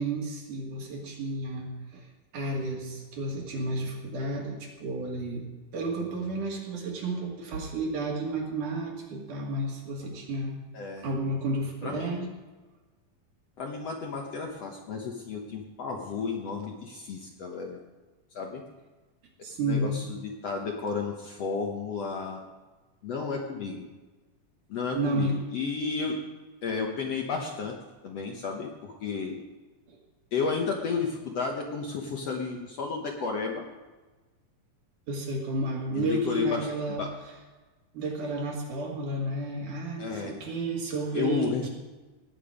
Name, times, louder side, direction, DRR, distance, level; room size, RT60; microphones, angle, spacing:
voice 1, 0.0-2.1 2.3-5.5 5.7-10.6 11.0-12.3 19.4-20.1 24.9-25.4 29.9-30.0 35.1-37.0 37.9-41.7, right 2 dB, 65° right, -1 dB, 3.7 m, -32 dB
voice 2, 10.7-11.1 11.8-12.3 13.6-17.8 18.3-18.6 19.6-22.4 23.0-23.8 24.7-26.2 26.6-27.7 28.0-29.4 30.3-33.6 35.9-37.1 40.0-40.4 41.1-41.7, left 5 dB, 60° left, 1 dB, 1.8 m, -32 dB
18.5 x 9.0 x 5.1 m, 1.2 s
omnidirectional pair, 4.0 m